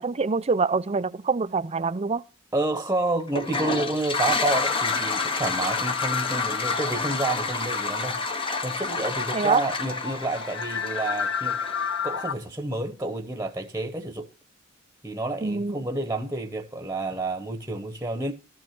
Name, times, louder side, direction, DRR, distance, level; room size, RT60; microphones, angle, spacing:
voice 1, 0.0-2.2 9.3-9.6 15.4-15.8, right 4 dB, 30° right, 0.5 m, -25 dB
voice 2, 2.5-8.2 8.6-11.6 12.0-14.3 15.0-18.3, right 2 dB, 15° right, 1.1 m, -29 dB
Toilet flush, 3.3-12.2, left 4 dB, 25° left, 1.0 m, -29 dB
sound 1, 4.5-12.3, left 6 dB, 65° left, 0.7 m, -33 dB
13.5 x 6.1 x 6.0 m
head